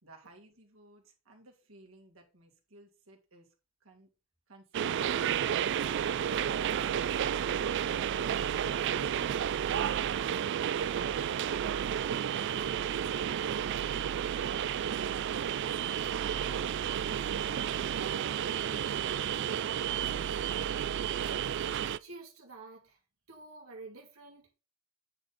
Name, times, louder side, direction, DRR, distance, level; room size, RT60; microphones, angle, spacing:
voice 1, 0.0-3.5 3.8-4.1, right 1 dB, 75° right, 2.2 m, -57 dB
sound 1, 4.7-22.0, right 9 dB, 55° right, 0.3 m, -31 dB
voice 2, 22.0-23.0 23.3-24.5, right 3 dB, 90° right, 2.1 m, -49 dB
8.8 x 4.3 x 4.0 m
head